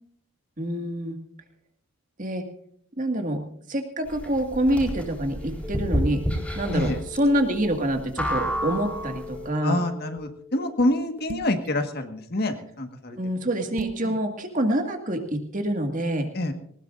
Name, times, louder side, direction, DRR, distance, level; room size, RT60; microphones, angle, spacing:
voice 1, 0.6-1.2 2.2-2.5 3.0-3.4 3.7-6.2 6.6-9.8 13.1-16.3, right 1 dB, 40° right, 5 dB, 2.0 m, -26 dB
sound 1, 4.1-9.4, equal, 5° left, 4.2 m, -29 dB
sound 2, 5.6-11.2, left 5 dB, 10° right, 3.6 m, -43 dB
voice 2, 9.6-13.2 14.0-14.1 16.3-16.5, left 1 dB, 50° left, 6 dB, 1.6 m, -26 dB
sound 3, 11.3-11.7 13.8-14.1, right 3 dB, 80° right, 0.7 m, -34 dB
20.0 x 19.5 x 2.6 m, 0.65 s
head